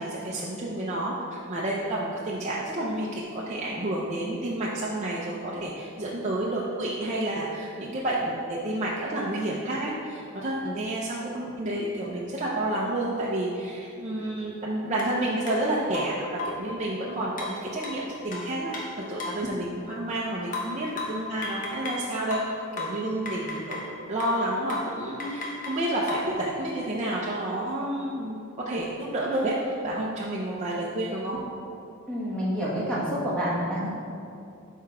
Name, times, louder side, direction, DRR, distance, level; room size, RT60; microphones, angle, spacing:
voice 1, 0.0-22.4 22.8-23.8 24.1-31.4, right 1 dB, 35° right, -5 dB, 0.6 m, -30 dB
sound 1, 15.0-15.1 15.5-15.6 15.9-16.7 17.4-19.5 20.5-22.1 22.3-23.9 24.2-24.4 24.7-24.9 25.2-26.3, left 3 dB, 40° left, 1.1 m, -35 dB
voice 2, 32.1-33.9, equal, 5° left, -7 dB, 1.3 m, -28 dB
6.6 x 4.5 x 4.8 m, 2.6 s
head